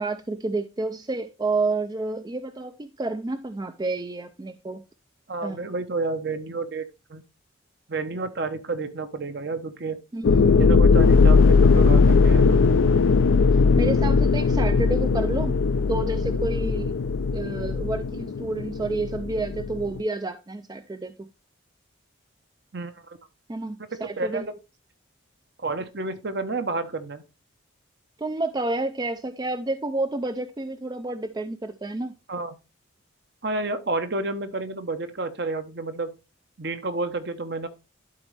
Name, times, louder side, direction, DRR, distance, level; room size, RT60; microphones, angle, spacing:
voice 1, 0.0-4.8 5.4-5.7 10.1-10.7 13.5-15.6 15.9-16.9 17.3-21.3 23.5-24.4 28.2-32.1, right 2 dB, 20° right, 0.3 m, -30 dB
voice 2, 5.3-7.2 7.9-10.0 10.6-12.6 22.7-23.2 23.9-24.5 25.6-27.2 32.3-32.6 33.4-36.2 36.6-37.7, right 3 dB, 55° right, 0.9 m, -30 dB
sound 1, 10.2-20.0, left 4 dB, 75° left, 0.4 m, -19 dB
11.5 x 4.1 x 3.2 m
head